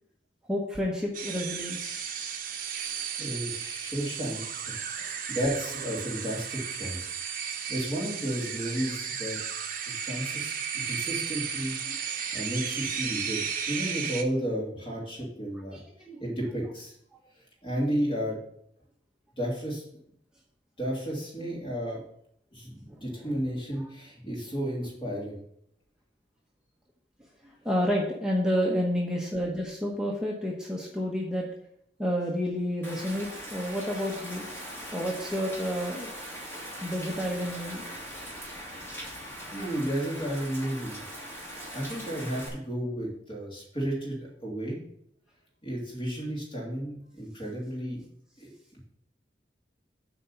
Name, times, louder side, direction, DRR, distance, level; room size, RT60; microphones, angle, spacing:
voice 1, 0.5-2.0 11.9-12.0 15.7-15.8 16.0-16.2 17.1-17.2 22.9-23.3 23.8-23.9 27.4-31.5 32.0-34.5 34.9-36.1 36.8-37.9, equal, 5° right, -2 dB, 1.0 m, -30 dB
sound 1, 1.1-14.2, right 7 dB, 50° right, 1.0 m, -34 dB
voice 2, 2.8-4.4 4.7-7.1 7.4-9.4 10.0-15.8 16.2-16.9 17.6-18.4 19.4-19.8 20.8-22.0 22.5-25.4 38.9-39.2 39.5-41.0 41.7-44.8 45.6-48.0 48.4-48.8, equal, 30° left, -3 dB, 3.1 m, -33 dB
Rain, 32.8-42.5, equal, 15° left, 2.7 m, -41 dB
8.3 x 4.5 x 6.9 m, 0.70 s
head